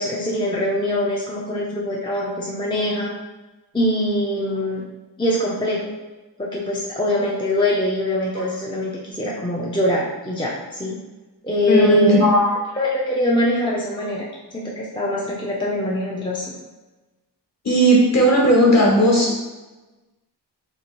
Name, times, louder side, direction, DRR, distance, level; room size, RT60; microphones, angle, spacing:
voice 1, 0.0-3.1 3.7-4.8 5.2-5.8 6.4-11.0 11.4-12.2 12.8-14.3 14.5-16.4, left 1 dB, 10° left, -5 dB, 0.5 m, -23 dB
voice 2, 11.7-12.6 17.6-19.4, equal, 40° left, -3 dB, 1.3 m, -15 dB
2.8 x 2.7 x 4.3 m, 1.2 s
wide cardioid pair, 95°, 42 cm